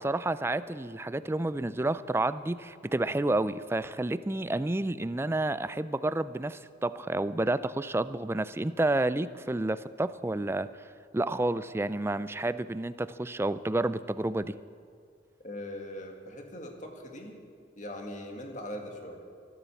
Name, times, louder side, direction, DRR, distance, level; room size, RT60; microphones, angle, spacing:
voice 1, 0.0-10.7 11.1-14.5, right 2 dB, 15° right, 14 dB, 0.3 m, -30 dB
voice 2, 15.4-17.4 17.8-19.2, left 1 dB, 40° left, 2 dB, 2.0 m, -41 dB
13.5 x 12.5 x 7.1 m, 2.1 s
head